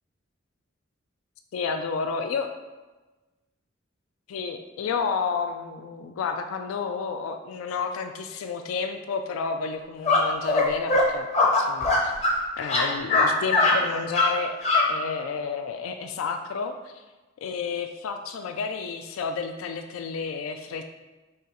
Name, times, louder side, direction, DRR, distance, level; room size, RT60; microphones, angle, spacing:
voice 1, 1.5-2.5 4.3-11.3 11.6-12.1 12.6-17.0 17.4-20.8, left 5 dB, 85° left, 6 dB, 0.3 m, -31 dB
sound 1, 10.0-10.2 10.5-10.6 10.9-11.0 11.3-12.4 12.6-13.3 13.5-13.7 14.1-14.3 14.6-14.8, left 3 dB, 30° left, 0.7 m, -20 dB
4.3 x 3.1 x 3.7 m, 1.2 s
head